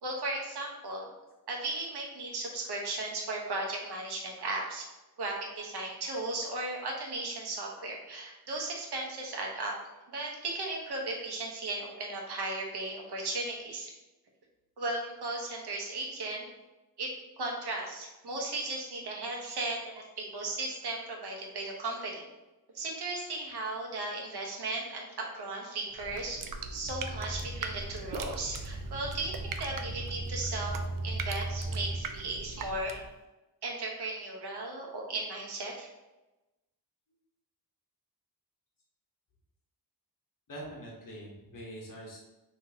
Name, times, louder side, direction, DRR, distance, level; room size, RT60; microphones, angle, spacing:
voice 1, 0.0-1.1 1.5-4.8 5.2-9.7 10.1-13.9 14.8-16.5 17.0-17.1 17.4-22.2 22.7-25.1 25.3-26.4 26.7-30.7 31.0-33.0 33.6-35.9, right 2 dB, 85° right, -1 dB, 1.1 m, -36 dB
sound 1, 25.9-33.2, right 4 dB, 60° right, 0.5 m, -41 dB
sound 2, 26.9-32.0, right 2 dB, 5° left, 1.0 m, -38 dB
voice 2, 40.5-42.2, right 1 dB, 55° left, -3 dB, 1.2 m, -44 dB
5.6 x 2.9 x 2.8 m, 1.0 s
wide cardioid pair, 160°, 39 cm